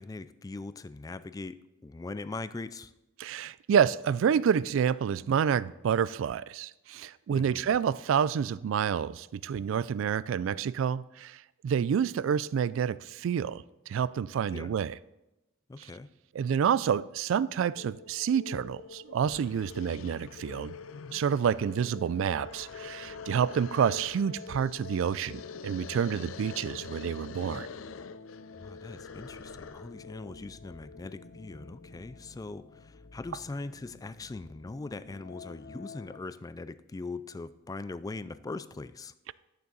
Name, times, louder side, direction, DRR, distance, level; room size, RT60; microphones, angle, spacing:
voice 1, 0.0-2.9 7.3-7.6 14.5-14.7 15.7-16.1 21.6-21.8 28.5-39.1, left 3 dB, 20° left, 14 dB, 0.3 m, -41 dB
voice 2, 3.2-15.0 16.4-20.7 21.1-27.7, right 7 dB, 70° right, 19 dB, 0.3 m, -28 dB
sound 1, 17.8-36.2, left 4 dB, 50° left, 0.7 m, -48 dB
sound 2, 18.8-18.9 19.2-30.0, left 5 dB, 90° left, 0.5 m, -46 dB
12.0 x 6.9 x 4.0 m, 0.93 s
head